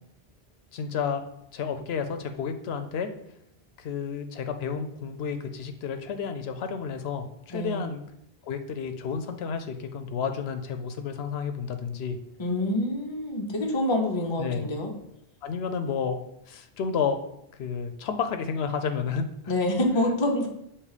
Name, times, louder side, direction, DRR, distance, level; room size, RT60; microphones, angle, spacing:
voice 1, 0.7-1.2 1.5-3.1 3.8-8.0 8.5-12.2 14.4-14.6 15.4-16.2 16.5-17.2 17.6-19.3, left 6 dB, 80° left, 7 dB, 0.8 m, -31 dB
voice 2, 7.5-7.9 12.4-14.9 19.5-20.5, left 1 dB, 30° left, 1 dB, 0.8 m, -26 dB
6.7 x 2.9 x 4.9 m, 0.77 s
omnidirectional pair, 1.0 m